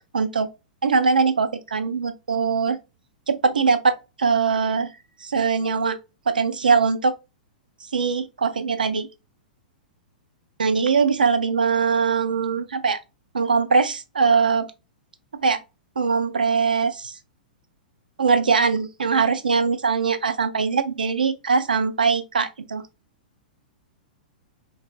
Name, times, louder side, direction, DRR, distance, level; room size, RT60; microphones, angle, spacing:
voice 1, 0.1-0.5 0.8-2.8 3.3-4.9 5.2-6.0 6.3-7.1 7.9-9.1 10.6-13.0 13.3-14.7 15.4-15.6 16.0-17.1 18.2-22.8, right 5 dB, 75° right, 0.4 m, -21 dB
3.2 x 2.2 x 2.4 m
figure-of-eight pair, 105°, 5 cm